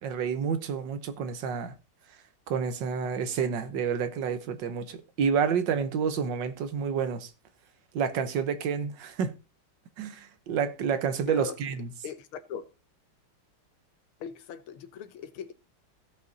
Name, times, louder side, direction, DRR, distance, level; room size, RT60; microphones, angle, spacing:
voice 1, 0.0-1.7 2.5-7.3 7.9-9.3 10.0-11.9, right 6 dB, 60° right, 1.6 m, -29 dB
voice 2, 12.0-12.6 14.2-15.5, left 7 dB, 75° left, 1.7 m, -39 dB
16.0 x 5.5 x 4.0 m
omnidirectional pair, 2.4 m